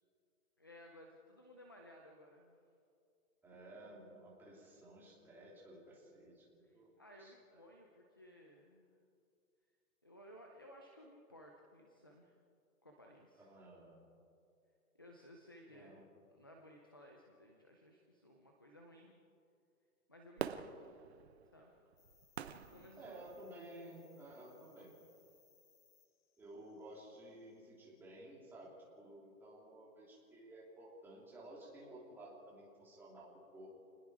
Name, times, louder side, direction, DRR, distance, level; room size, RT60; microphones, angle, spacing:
voice 1, 0.6-2.6 6.6-8.9 10.0-12.3 12.8-13.5 14.9-19.1 20.1-20.9 21.5-21.7 22.7-23.2, equal, 15° left, 1 dB, 0.5 m, -59 dB
voice 2, 3.4-6.9 7.2-7.6 13.4-14.0 15.7-16.0 23.0-25.0 26.4-33.8, right 1 dB, 5° right, -5 dB, 2.9 m, -54 dB
Fireworks, 20.4-23.7 24.3-24.4, right 8 dB, 45° right, 0.9 m, -46 dB
sound 1, 22.0-27.7, left 7 dB, 50° left, 2.7 m, -71 dB
28.0 x 20.0 x 4.8 m, 2.4 s
hypercardioid pair, 175°, 45 cm